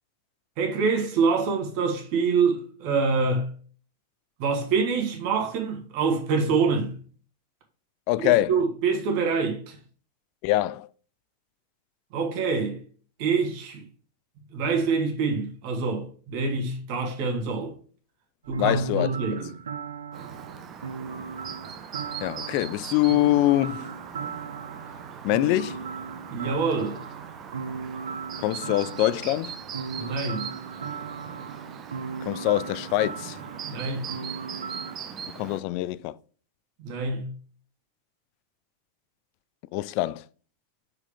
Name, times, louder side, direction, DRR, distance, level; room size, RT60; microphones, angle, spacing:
voice 1, 0.6-3.5 4.4-7.0 8.2-9.8 12.1-12.8 13.2-13.8 14.5-17.7 18.5-19.5 26.3-27.0 29.9-30.5 33.6-34.1 36.8-37.3, right 4 dB, 45° right, 1.8 m, -26 dB
voice 2, 8.1-8.6 10.4-10.9 18.6-19.4 22.2-23.9 25.2-25.8 28.4-29.5 32.2-33.4 35.4-36.2 39.7-40.2, left 16 dB, 45° left, 0.3 m, -24 dB
sound 1, 18.4-35.0, right 5 dB, 70° right, 0.7 m, -37 dB
Chirp tweet, 20.1-35.6, right 8 dB, 30° right, 0.8 m, -41 dB
6.2 x 4.9 x 3.5 m
figure-of-eight pair, 90°, 0 cm